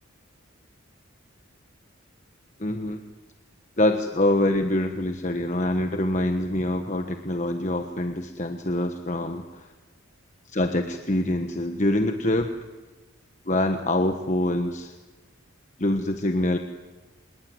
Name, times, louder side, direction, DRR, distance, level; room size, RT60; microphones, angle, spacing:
voice 1, 2.6-3.0 3.8-9.7 10.5-12.5 13.5-14.9 15.8-16.6, left 1 dB, 35° left, 6 dB, 1.3 m, -25 dB
25.5 x 21.5 x 9.6 m, 1.3 s
head